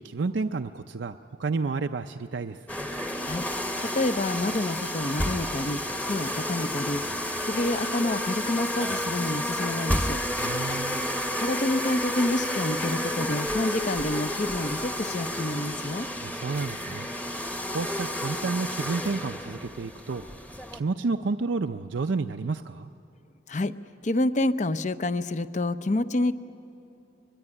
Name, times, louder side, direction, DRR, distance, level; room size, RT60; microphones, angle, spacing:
voice 1, 0.0-2.6 10.4-11.1 16.2-17.1 17.7-20.2 20.7-22.9, right 4 dB, 70° right, 7 dB, 0.5 m, -30 dB
sound 1, 2.7-20.8, left 1 dB, 10° left, 1.0 m, -31 dB
voice 2, 3.8-5.8 6.1-7.0 7.4-10.2 11.4-16.1 23.5-23.7 24.0-26.4, left 2 dB, 40° left, 12 dB, 0.7 m, -28 dB
24.0 x 22.0 x 9.9 m, 2.9 s
head